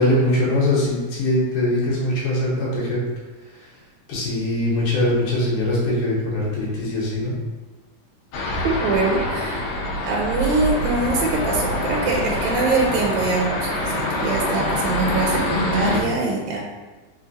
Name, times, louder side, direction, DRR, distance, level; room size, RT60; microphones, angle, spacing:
voice 1, 0.0-3.0 3.5-3.7 4.1-7.3, left 1 dB, 60° left, -6 dB, 1.9 m, -22 dB
sound 1, 8.3-16.0, left 1 dB, 80° left, 1.3 m, -25 dB
voice 2, 8.6-9.7 10.0-13.5 13.8-16.6, right 3 dB, 80° right, -1 dB, 1.9 m, -23 dB
4.3 x 3.6 x 2.6 m, 1.3 s
omnidirectional pair, 3.4 m